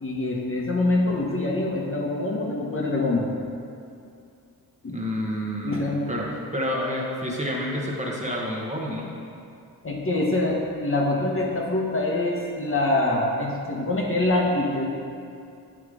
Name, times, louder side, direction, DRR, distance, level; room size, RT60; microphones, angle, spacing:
voice 1, 0.0-3.3 4.8-5.0 5.6-6.1 9.8-14.9, left 2 dB, 35° left, -2 dB, 1.0 m, -25 dB
voice 2, 4.9-9.1, equal, 20° right, -3 dB, 1.1 m, -29 dB
8.2 x 3.7 x 4.8 m, 2.4 s
cardioid pair, 90°, 38 cm